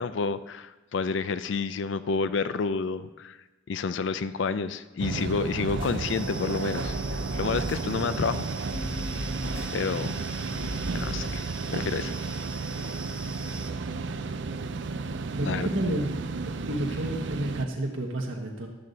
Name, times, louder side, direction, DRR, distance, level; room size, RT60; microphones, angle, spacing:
voice 1, 0.0-3.4 3.7-7.0 7.3-8.4 9.7-10.1 10.9-11.4 11.7-12.1 15.4-15.7, left 4 dB, 65° left, 13 dB, 0.4 m, -29 dB
sound 1, 5.0-17.7, right 4 dB, 65° right, 0.5 m, -33 dB
sound 2, 5.6-11.3, equal, 25° left, 3.4 m, -38 dB
sound 3, 6.0-13.7, right 2 dB, 5° right, 0.4 m, -43 dB
voice 2, 15.3-16.1 16.7-18.7, right 1 dB, 90° right, 0 dB, 1.3 m, -30 dB
12.5 x 7.8 x 4.1 m, 1.1 s
head